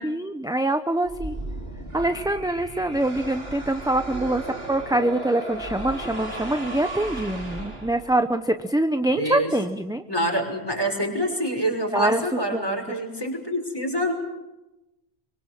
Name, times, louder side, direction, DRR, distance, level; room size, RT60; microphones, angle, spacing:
voice 1, 0.0-1.3 1.9-10.0 11.9-12.2 12.5-12.6, right 1 dB, 5° right, 8 dB, 0.8 m, -24 dB
sound 1, 1.0-8.3, right 1 dB, 70° right, 4.3 m, -35 dB
voice 2, 9.1-9.5 10.1-14.1, equal, 20° left, 2 dB, 5.8 m, -26 dB
24.5 x 23.5 x 7.5 m, 0.99 s
omnidirectional pair, 1.1 m